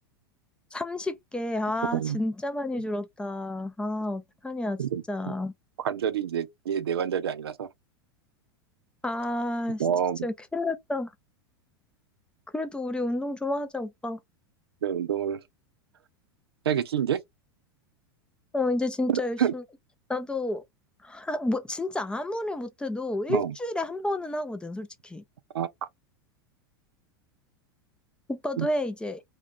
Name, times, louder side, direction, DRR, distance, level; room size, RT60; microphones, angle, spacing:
voice 1, 0.7-4.8 5.1-5.5 9.0-9.9 10.2-11.1 12.5-14.2 18.5-19.6 20.1-20.6 21.0-25.2 28.3-29.2, left 1 dB, 5° left, 0.4 m, -30 dB
voice 2, 4.8-5.3 5.8-7.7 9.8-10.3 14.8-15.4 16.7-17.2 19.1-19.5 23.3-23.5 25.5-25.7 28.6-28.7, right 8 dB, 80° right, 0.4 m, -28 dB
2.3 x 2.2 x 2.4 m
hypercardioid pair, 95°, 13 cm